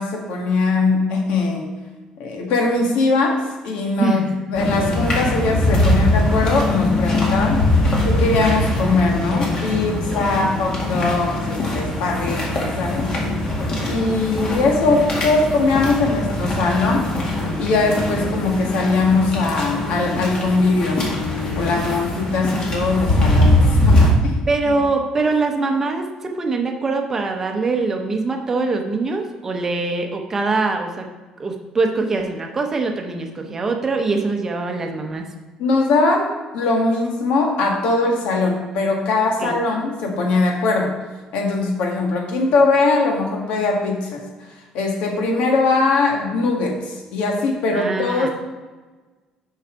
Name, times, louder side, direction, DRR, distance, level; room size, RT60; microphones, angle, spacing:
voice 1, 0.0-1.7 2.2-7.6 8.0-13.1 13.8-17.1 17.6-21.0 21.6-24.4 35.6-36.3 36.5-40.9 41.3-44.2 44.7-48.3, left 3 dB, 80° left, 1 dB, 1.6 m, -20 dB
voice 2, 4.0-4.4 10.1-10.5 21.8-22.0 24.5-31.1 31.4-35.2 39.4-39.6 47.7-48.3, right 3 dB, 20° right, 4 dB, 0.8 m, -23 dB
sound 1, 4.5-24.1, left 1 dB, 40° left, 1.8 m, -21 dB
7.0 x 5.6 x 5.0 m, 1.3 s
cardioid pair, 165°, 2 cm